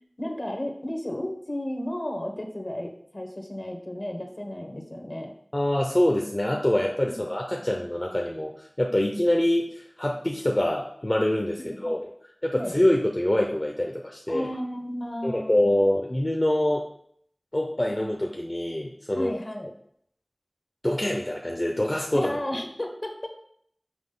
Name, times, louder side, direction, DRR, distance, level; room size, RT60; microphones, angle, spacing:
voice 1, 0.2-5.3 7.0-7.2 11.6-12.0 12.5-12.7 14.3-15.6 19.1-19.7 22.1-23.3, left 1 dB, 60° left, 4 dB, 1.1 m, -33 dB
voice 2, 5.5-12.1 12.4-14.5 15.2-16.8 17.5-19.3 20.8-22.3, left 1 dB, 35° left, 0 dB, 0.7 m, -25 dB
6.2 x 4.9 x 3.8 m, 0.67 s
wide cardioid pair, 40°, 0 cm